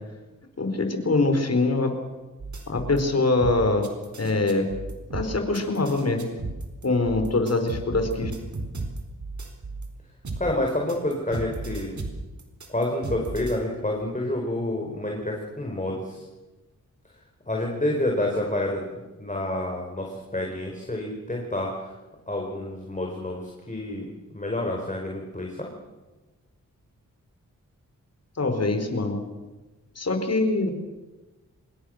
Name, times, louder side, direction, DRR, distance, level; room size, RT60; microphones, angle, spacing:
voice 1, 0.6-1.9 2.7-3.9 4.1-4.6 5.1-6.2 6.8-8.3 28.4-29.2 30.0-30.7, left 2 dB, 50° left, 7 dB, 4.6 m, -23 dB
sound 1, 2.4-3.0 3.4-9.9 10.2-13.6, right 3 dB, 60° right, 4.2 m, -35 dB
voice 2, 10.4-11.9 12.7-16.2 17.5-18.9 19.2-21.7 22.3-25.7, left 1 dB, 25° left, 0 dB, 4.9 m, -28 dB
26.0 x 21.0 x 6.6 m, 1.2 s
cardioid pair, 60°, 33 cm